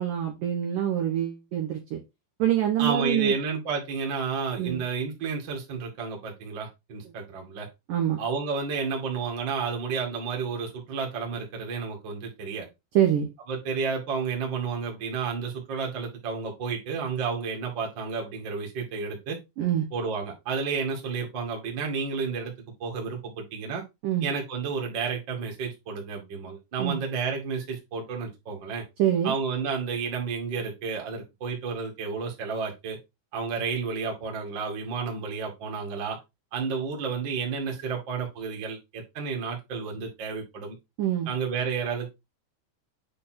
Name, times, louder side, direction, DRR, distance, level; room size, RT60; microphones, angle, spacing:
voice 1, 0.0-2.0 2.4-3.3 4.6-4.8 7.9-8.2 12.9-13.3 19.6-19.9 24.0-24.3 26.8-27.0 29.0-29.3 41.0-41.3, right 11 dB, 70° right, 2.1 m, -25 dB
voice 2, 2.8-7.7 8.2-12.7 13.5-19.4 19.9-22.5 22.8-23.8 24.2-28.8 29.2-33.0 33.3-36.2 36.5-40.8 41.3-42.1, right 5 dB, 40° right, 1.6 m, -31 dB
8.5 x 3.5 x 4.3 m
omnidirectional pair, 5.5 m